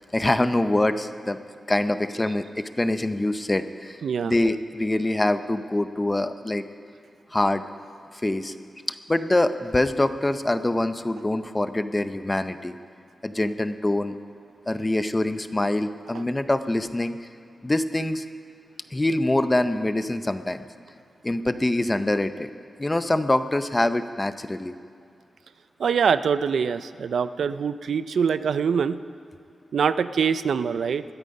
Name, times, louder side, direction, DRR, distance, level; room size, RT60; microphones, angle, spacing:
voice 1, 0.1-1.4 1.7-6.6 7.3-7.6 8.1-8.5 8.9-12.8 13.2-14.2 14.7-17.3 17.6-18.3 18.9-20.6 21.2-22.5 22.8-24.7, left 1 dB, 15° left, 10 dB, 0.6 m, -24 dB
voice 2, 4.0-4.3 25.8-29.0 29.7-31.0, right 6 dB, 80° right, 13 dB, 0.5 m, -24 dB
20.5 x 13.0 x 5.4 m, 2.3 s
wide cardioid pair, 140°, 0 cm